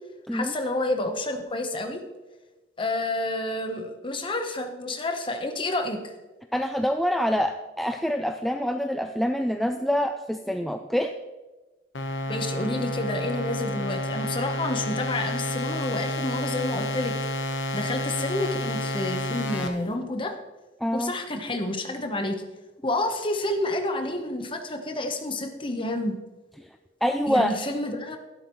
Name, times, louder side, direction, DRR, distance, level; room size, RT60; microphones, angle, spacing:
voice 1, 0.3-2.0 2.8-6.0 12.3-17.1 17.7-20.3 20.9-22.4 22.8-26.1 27.3-28.2, left 2 dB, 25° left, 5 dB, 1.0 m, -29 dB
voice 2, 6.5-11.1 20.8-21.1 27.0-27.5, equal, ahead, 5 dB, 0.3 m, -26 dB
sound 1, 11.9-19.7, left 1 dB, 85° left, 1.1 m, -30 dB
12.5 x 11.5 x 3.1 m, 1.2 s
head